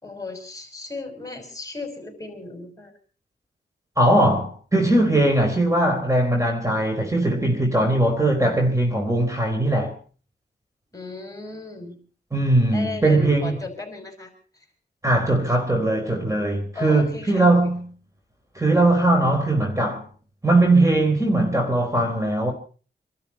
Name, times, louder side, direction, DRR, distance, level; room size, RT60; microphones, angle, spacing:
voice 1, 0.0-2.9 10.9-12.0 12.7-14.3 16.7-17.6, left 3 dB, 20° left, 5.5 m, -35 dB
voice 2, 4.0-9.9 12.3-13.6 15.0-17.9 18.6-20.1 20.4-22.5, right 1 dB, 15° right, 4.2 m, -20 dB
26.0 x 12.5 x 4.3 m
cardioid pair, 65°, 18 cm